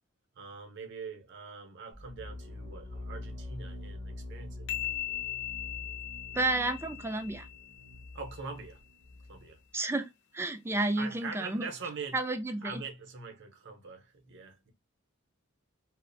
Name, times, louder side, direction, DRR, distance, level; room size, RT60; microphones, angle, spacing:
voice 1, 0.3-4.6 8.1-8.8 9.3-9.6 11.0-12.2 12.6-14.7, right 5 dB, 55° right, 0.7 m, -43 dB
sound 1, 1.9-9.6, left 2 dB, 30° left, 0.7 m, -45 dB
sound 2, 4.7-8.2, left 13 dB, 55° left, 0.4 m, -39 dB
voice 2, 6.3-7.5 9.7-11.7 12.1-12.8, right 2 dB, 10° right, 0.3 m, -31 dB
2.4 x 2.0 x 2.5 m
head